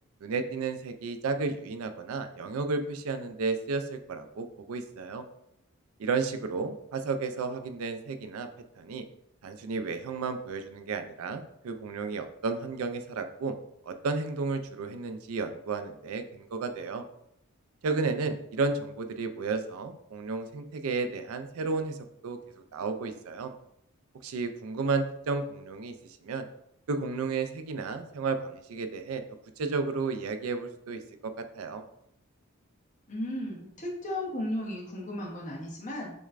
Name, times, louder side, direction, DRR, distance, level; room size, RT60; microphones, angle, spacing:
voice 1, 0.2-5.2 6.0-8.5 8.8-9.0 9.4-13.5 13.9-17.0 17.8-22.0 22.2-22.4 22.7-23.5 24.2-25.9 26.2-26.5 26.9-29.2 29.6-31.8, right 4 dB, 75° right, 8 dB, 0.4 m, -32 dB
voice 2, 33.1-36.1, left 1 dB, 35° left, -2 dB, 0.8 m, -35 dB
6.2 x 2.2 x 2.4 m, 0.75 s
head